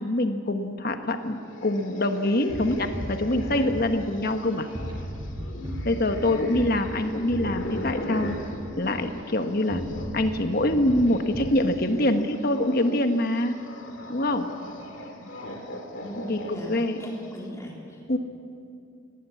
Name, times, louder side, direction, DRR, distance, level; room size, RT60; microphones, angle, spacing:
voice 1, 0.0-4.7 5.8-8.3 8.8-9.8 10.1-13.6 14.1-14.5 16.3-17.0 18.1-18.2, left 1 dB, 45° left, 7 dB, 1.3 m, -25 dB
sound 1, 1.4-10.2 10.5-17.3, left 1 dB, 60° left, 2.6 m, -39 dB
sound 2, 2.5-4.4 4.7-9.2 9.7-11.6, equal, 20° right, 5.5 m, -37 dB
voice 2, 17.0-18.0, left 1 dB, 15° left, -2 dB, 3.6 m, -38 dB
19.0 x 17.5 x 8.4 m, 2.4 s
head